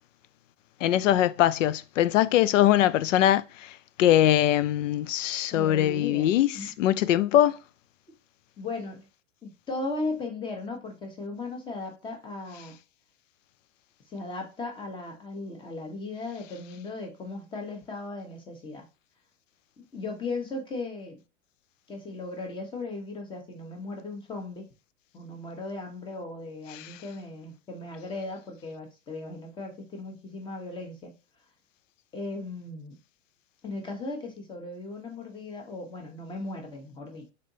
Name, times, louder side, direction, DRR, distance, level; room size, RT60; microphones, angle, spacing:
voice 1, 0.8-3.4 4.0-6.5 6.8-7.6, left 12 dB, 80° left, 0.5 m, -22 dB
voice 2, 5.5-6.7 8.6-9.0 9.4-12.8 14.1-18.9 19.9-21.2 21.9-24.6 25.1-31.1 32.1-33.0 33.6-37.3, left 3 dB, 15° left, 0.9 m, -37 dB
4.0 x 3.4 x 2.7 m
hypercardioid pair, 140°, 37 cm